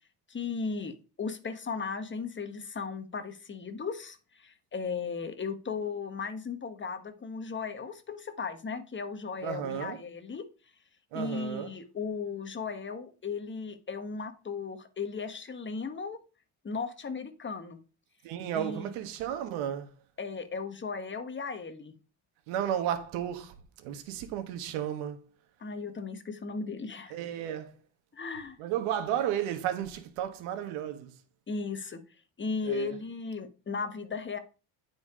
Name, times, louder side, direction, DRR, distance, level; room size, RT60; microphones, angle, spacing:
voice 1, 0.3-10.4 11.1-16.2 16.6-17.8 18.5-18.9 20.2-21.9 25.6-27.1 28.1-28.6 31.5-32.0 32.4-34.4, left 5 dB, 25° left, 1.3 m, -36 dB
voice 2, 9.4-10.0 11.1-11.7 18.2-19.9 22.5-25.2 27.1-27.8 28.6-31.1 32.6-32.9, right 10 dB, 90° right, 1.7 m, -33 dB
9.4 x 5.0 x 4.9 m
cardioid pair, 110°, 48 cm